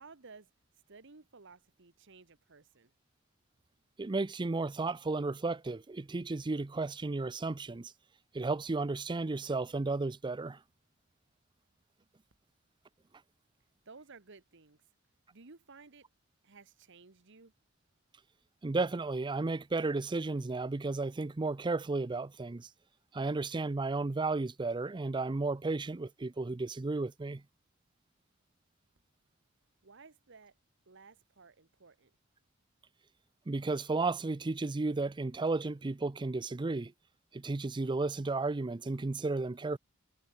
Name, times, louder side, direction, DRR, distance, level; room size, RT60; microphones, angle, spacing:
voice 1, 0.0-2.9 13.8-14.8 15.3-16.1 16.4-17.5 29.8-30.5 30.9-32.1, right 4 dB, 65° right, 1.4 m, -56 dB
voice 2, 4.0-7.9 8.3-10.6 18.6-22.7 23.1-27.4 33.5-36.9 37.3-39.8, right 3 dB, 20° right, 0.5 m, -33 dB
head